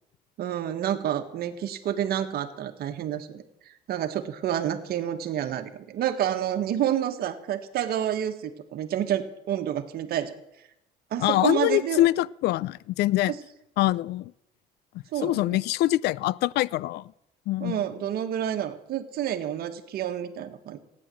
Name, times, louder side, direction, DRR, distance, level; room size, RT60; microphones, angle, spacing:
voice 1, 0.4-3.4 3.9-10.3 11.1-12.1 13.3-13.4 15.1-15.4 17.6-20.8, right 10 dB, 65° right, 1.5 m, -29 dB
voice 2, 11.2-13.3 13.8-14.3 15.2-17.0 17.5-17.8, left 15 dB, 75° left, 0.5 m, -24 dB
15.5 x 9.8 x 7.7 m
cardioid pair, 110°, 17 cm